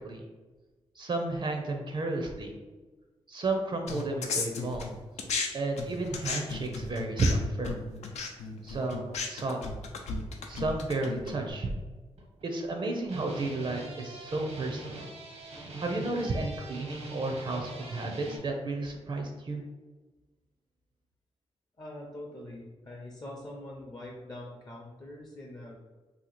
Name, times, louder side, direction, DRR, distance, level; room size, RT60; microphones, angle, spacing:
voice 1, 1.0-2.5 3.3-4.9 5.5-7.8 8.6-9.6 10.5-11.7 12.4-15.1 15.8-19.6, right 2 dB, 45° right, 3 dB, 0.5 m, -32 dB
sound 1, 3.9-5.5 5.8-11.5, left 4 dB, 85° left, 0.4 m, -35 dB
sound 2, 12.0-12.7 13.0-18.4, right 3 dB, 80° right, 0.9 m, -42 dB
voice 2, 21.8-25.8, left 1 dB, 40° left, -2 dB, 0.6 m, -44 dB
2.8 x 2.3 x 4.1 m, 1.3 s
cardioid pair, 70°, 11 cm